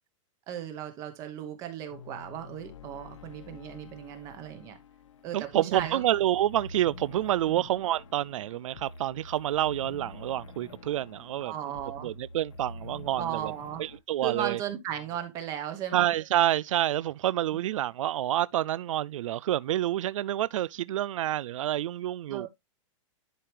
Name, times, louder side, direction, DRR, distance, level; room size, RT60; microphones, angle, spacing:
voice 1, 0.5-4.8 5.2-6.0 7.5-7.6 11.4-12.1 13.2-13.8 14.2-16.0 22.3-22.5, right 10 dB, 20° right, 1.0 m, -36 dB
sound 1, 1.9-14.0, left 2 dB, 75° left, 1.3 m, -47 dB
voice 2, 5.3-11.5 12.0-13.5 13.8-14.6 15.9-22.5, right 13 dB, 85° right, 0.4 m, -28 dB
11.0 x 4.8 x 3.3 m
supercardioid pair, 180°, 16 cm